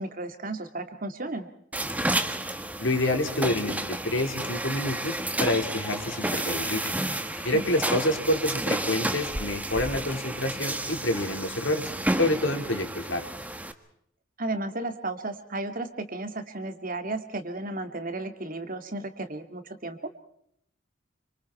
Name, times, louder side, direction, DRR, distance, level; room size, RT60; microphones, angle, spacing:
voice 1, 0.0-1.5 7.5-7.6 14.4-20.1, right 2 dB, 45° right, 8 dB, 2.4 m, -34 dB
sound 1, 1.7-13.7, right 1 dB, 10° right, 1.5 m, -31 dB
voice 2, 2.8-6.9 7.4-11.9 12.2-13.3, left 1 dB, 70° left, 4 dB, 4.4 m, -28 dB
sound 2, 5.7-10.8, equal, 10° left, 2.7 m, -43 dB
28.0 x 26.0 x 4.5 m, 0.72 s
head